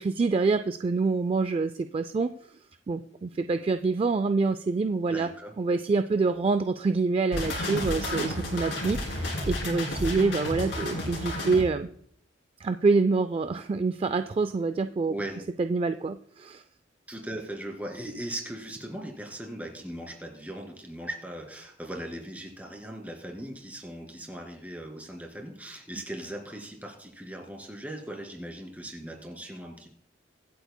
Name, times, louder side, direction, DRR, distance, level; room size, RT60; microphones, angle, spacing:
voice 1, 0.0-2.3 2.9-5.3 5.6-11.9 12.6-15.1 15.6-16.6, right 4 dB, 30° right, 10 dB, 0.3 m, -26 dB
voice 2, 5.1-5.5 15.1-15.4 17.1-29.9, right 1 dB, 10° right, 2 dB, 2.2 m, -39 dB
sound 1, 7.3-11.6, left 1 dB, 65° left, 2.8 m, -31 dB
23.5 x 8.1 x 2.2 m, 0.64 s
head